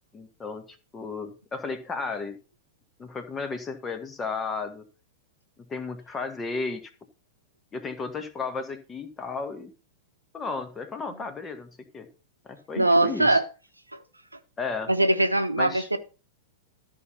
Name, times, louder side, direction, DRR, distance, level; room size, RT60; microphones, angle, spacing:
voice 1, 0.1-2.4 3.0-4.9 5.6-6.9 7.7-9.7 10.3-12.1 12.4-13.4 14.6-14.9 15.6-15.9, left 4 dB, 15° left, 1.6 m, -34 dB
voice 2, 12.8-13.4 14.9-16.0, right 1 dB, 85° right, 1.0 m, -21 dB
13.5 x 5.7 x 5.6 m
figure-of-eight pair, 95°, 0 cm